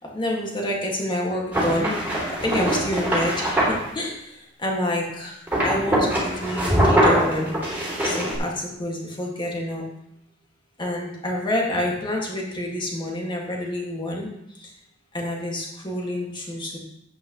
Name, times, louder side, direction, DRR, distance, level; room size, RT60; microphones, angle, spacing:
voice 1, 0.1-1.9 2.3-7.7 8.0-9.8 10.8-14.3 14.6-14.7 15.1-16.8, left 1 dB, 25° left, -1 dB, 2.0 m, -28 dB
sound 1, 1.5-3.8 5.5-8.4, equal, 10° right, 2.9 m, -22 dB
10.0 x 8.6 x 3.1 m, 0.80 s
head